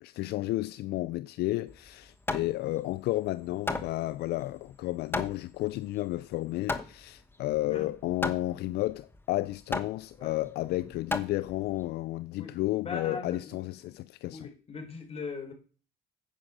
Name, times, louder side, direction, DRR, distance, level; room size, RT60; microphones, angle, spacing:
voice 1, 0.0-14.5, left 17 dB, 75° left, 0.4 m, -32 dB
Hammer, 1.7-11.9, left 2 dB, 15° left, 1.1 m, -37 dB
voice 2, 12.8-13.9 14.3-15.5, left 4 dB, 35° left, 4.4 m, -40 dB
10.0 x 6.4 x 7.4 m
cardioid pair, 110°, 17 cm